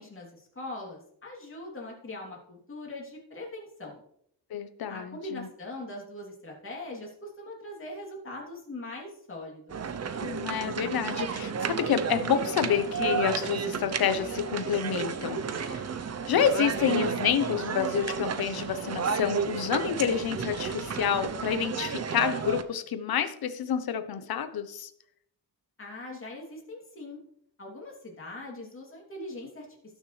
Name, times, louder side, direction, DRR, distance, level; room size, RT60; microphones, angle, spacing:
voice 1, 0.0-4.0 4.9-9.8 25.8-27.2 27.6-29.7, left 2 dB, 30° left, -2 dB, 3.1 m, -41 dB
voice 2, 4.5-5.5 10.2-15.8 16.3-24.9, left 8 dB, 60° left, 10 dB, 1.0 m, -28 dB
sound 1, 9.7-22.6, right 6 dB, 40° right, 0.7 m, -32 dB
18.0 x 6.6 x 3.3 m, 0.70 s
wide cardioid pair, 140°, 40 cm